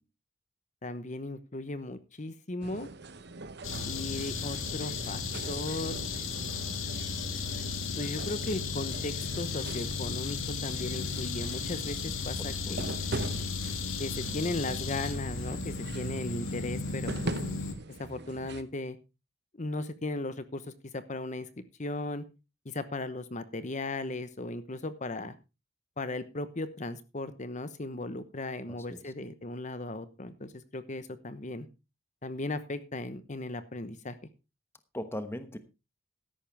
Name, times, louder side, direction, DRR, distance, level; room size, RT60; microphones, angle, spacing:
voice 1, 0.8-2.9 3.9-5.2 5.5-6.0 8.0-13.1 14.0-17.3 18.0-19.0 19.6-20.6 20.9-21.5 21.8-22.3 22.6-25.3 26.0-31.7 32.2-34.2, left 2 dB, 35° left, 12 dB, 1.0 m, -37 dB
sound 1, 2.6-18.6, right 2 dB, 55° right, 1.1 m, -42 dB
sound 2, 3.6-17.7, left 4 dB, 75° left, 2.2 m, -35 dB
voice 2, 12.4-12.7 28.7-29.0 34.9-35.6, left 1 dB, 10° left, 10 dB, 1.0 m, -39 dB
13.5 x 11.0 x 3.4 m, 0.28 s
head